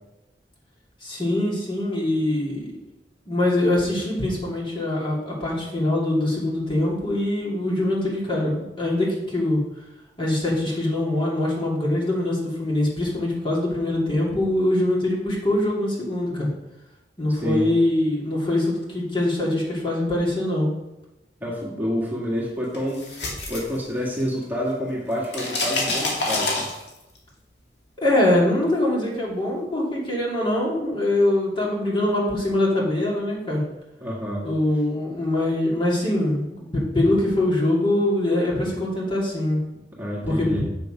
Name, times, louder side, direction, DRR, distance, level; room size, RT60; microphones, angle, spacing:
voice 1, 1.0-2.7 3.3-9.6 10.2-16.5 17.2-20.7 28.0-33.6 34.4-39.6 40.2-40.7, left 1 dB, 30° left, -5 dB, 2.6 m, -23 dB
voice 2, 17.3-17.7 21.4-23.0 23.5-26.7 34.0-34.5 40.0-40.7, equal, 10° right, -5 dB, 1.8 m, -28 dB
sound 1, 22.7-24.4 24.7-27.2, left 2 dB, 75° left, 2.2 m, -27 dB
7.1 x 6.8 x 5.1 m, 0.92 s
head